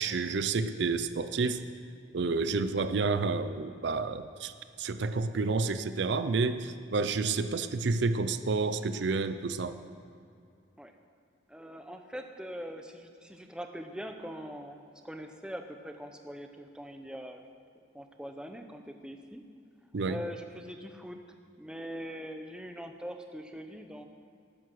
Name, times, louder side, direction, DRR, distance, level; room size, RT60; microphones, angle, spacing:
voice 1, 0.0-1.6 2.1-9.8 19.9-20.2, right 4 dB, 65° right, 11 dB, 0.5 m, -30 dB
voice 2, 11.5-17.4 17.9-19.4 20.1-21.2 21.6-24.0, equal, 5° right, 5 dB, 0.7 m, -42 dB
12.5 x 9.4 x 6.2 m, 2.4 s
head